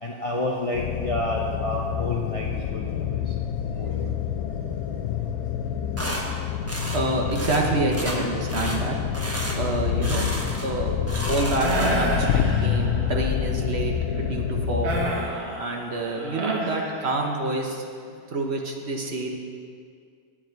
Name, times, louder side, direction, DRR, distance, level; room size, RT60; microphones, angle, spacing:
voice 1, 0.0-3.2 3.8-4.1, left 1 dB, 35° left, -2 dB, 0.6 m, -30 dB
sound 1, 0.7-15.1, left 9 dB, 75° left, 1.0 m, -27 dB
sound 2, 6.0-6.2 6.7-7.0 7.3-7.6 7.9-8.2 8.5-8.8 9.1-9.6 10.0-10.7 11.0-12.1, equal, 10° right, 0.9 m, -32 dB
voice 2, 6.9-9.0 9.5-10.3 10.6-10.9 11.3-15.0 15.6-17.9 18.3-19.3, right 2 dB, 50° right, 1 dB, 1.1 m, -27 dB
sound 3, 11.6-13.2 14.8-17.5, right 2 dB, 65° right, 1.5 m, -29 dB
10.5 x 8.5 x 4.5 m, 2.2 s
omnidirectional pair, 1.6 m